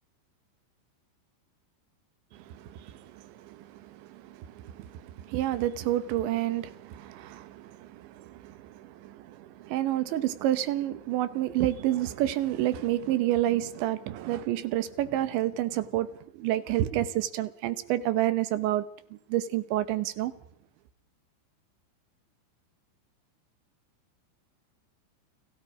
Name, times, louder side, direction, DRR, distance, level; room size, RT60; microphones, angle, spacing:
voice 1, 2.3-18.9 19.3-20.3, right 13 dB, 75° right, 3.2 m, -29 dB
30.0 x 21.0 x 5.0 m
omnidirectional pair, 5.8 m